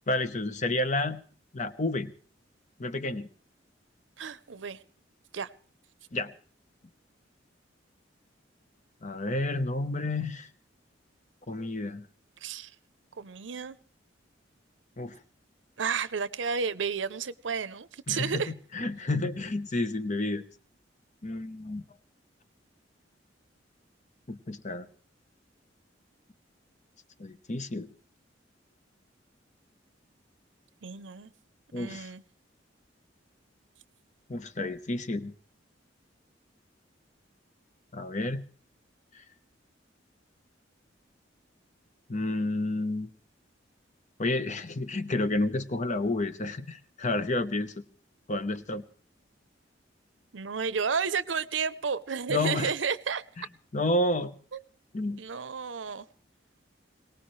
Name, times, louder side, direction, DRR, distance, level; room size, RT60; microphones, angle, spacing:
voice 1, 0.1-1.2 1.5-2.1 2.8-3.3 6.1-6.3 9.0-10.5 11.5-12.1 15.0-15.1 18.1-20.4 21.2-21.8 24.3-24.9 27.2-27.9 31.7-32.1 34.3-35.3 37.9-38.4 42.1-43.1 44.2-47.8 48.3-48.8 52.3-52.7 53.4-53.5 53.7-54.3 54.9-55.2, left 2 dB, 40° left, 12 dB, 1.0 m, -30 dB
voice 2, 4.2-4.8 5.3-5.5 12.4-12.7 13.2-13.8 15.8-18.5 30.8-31.3 31.8-32.2 50.3-53.2 55.2-56.0, right 6 dB, 80° right, 16 dB, 0.7 m, -32 dB
22.5 x 19.0 x 3.2 m, 0.42 s
head